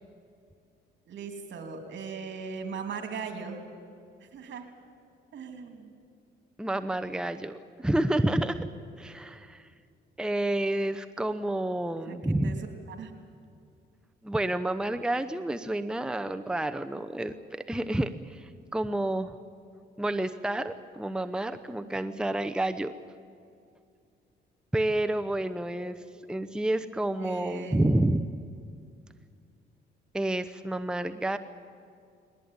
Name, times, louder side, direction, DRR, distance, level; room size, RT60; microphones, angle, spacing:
voice 1, 1.1-3.6 4.2-4.7 5.3-5.9 12.0-12.6 12.9-13.1 27.2-27.8, right 5 dB, 65° right, 6 dB, 3.3 m, -39 dB
voice 2, 6.6-8.7 9.0-9.7 10.2-12.6 14.2-19.4 20.0-22.9 24.7-26.0 26.3-28.2 30.1-31.4, right 1 dB, 5° right, 9 dB, 0.8 m, -29 dB
20.0 x 19.0 x 9.6 m, 2.3 s
cardioid pair, 90°, 20 cm